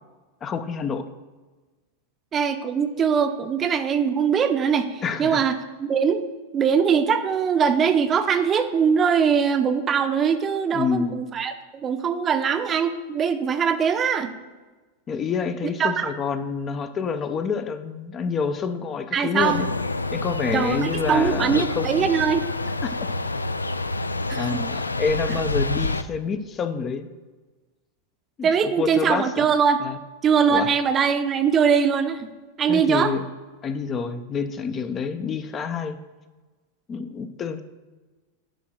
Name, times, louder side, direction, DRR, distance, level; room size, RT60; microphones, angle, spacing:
voice 1, 0.4-1.1 5.0-5.4 10.7-11.2 15.1-19.7 20.1-21.9 22.8-23.3 24.4-27.1 28.4-29.5 29.8-30.0 30.5-30.7 32.7-33.2 33.6-36.0 36.9-37.6, left 5 dB, 25° left, 9 dB, 0.6 m, -28 dB
voice 2, 2.3-5.5 5.8-6.2 6.5-14.3 15.8-16.1 19.1-19.6 20.5-22.4 24.3-24.6 28.4-29.8 30.2-32.3 32.6-33.1, right 7 dB, 25° right, 8 dB, 0.7 m, -22 dB
sound 1, 19.4-26.0, left 2 dB, 80° left, 0.4 m, -28 dB
10.0 x 3.8 x 6.1 m, 1.3 s
figure-of-eight pair, 90°, 0 cm